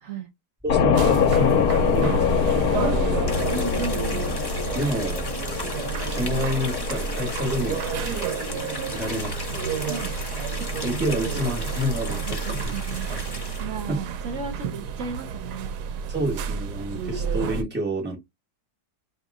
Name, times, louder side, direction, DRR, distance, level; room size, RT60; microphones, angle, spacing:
voice 1, 0.6-3.2 4.7-5.2 6.0-7.9 8.8-9.6 10.8-12.7 13.6-14.0 16.1-18.2, equal, 5° right, 1.3 m, -29 dB
sound 1, 0.7-12.7, left 7 dB, 75° left, 1.0 m, -26 dB
sound 2, 0.9-17.6, right 7 dB, 85° right, 1.2 m, -31 dB
voice 2, 2.7-4.3 8.0-8.2 9.1-9.4 9.9-10.5 12.2-13.1 13.6-15.7, right 5 dB, 60° right, 1.0 m, -35 dB
sound 3, 3.3-13.6, left 2 dB, 30° left, 0.4 m, -36 dB
2.9 x 2.9 x 3.5 m
omnidirectional pair, 1.7 m